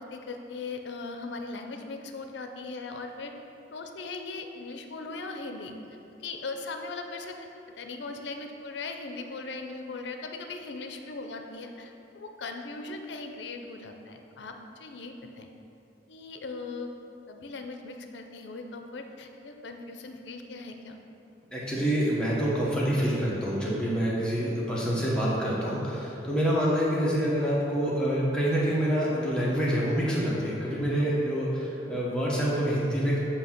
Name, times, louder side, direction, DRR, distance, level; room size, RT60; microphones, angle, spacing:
voice 1, 0.0-3.3 3.7-5.7 6.2-15.5 16.1-16.9 17.3-21.0, left 3 dB, 70° left, 5 dB, 0.6 m, -39 dB
voice 2, 21.5-33.2, equal, 5° left, -7 dB, 1.0 m, -26 dB
8.0 x 2.8 x 5.9 m, 2.9 s
head